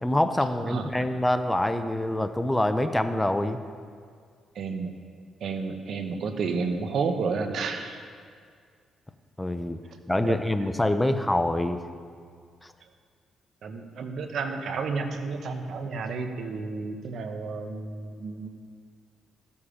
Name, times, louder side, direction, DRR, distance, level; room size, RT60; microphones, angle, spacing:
voice 1, 0.0-3.6 9.4-9.8 10.1-11.8, left 1 dB, 10° left, 9 dB, 0.5 m, -25 dB
voice 2, 0.7-1.0 4.5-4.9 5.4-8.0 10.2-10.4 13.6-18.5, right 4 dB, 65° right, 6 dB, 1.0 m, -31 dB
14.5 x 7.1 x 5.0 m, 2.1 s
cardioid pair, 90°, 0 cm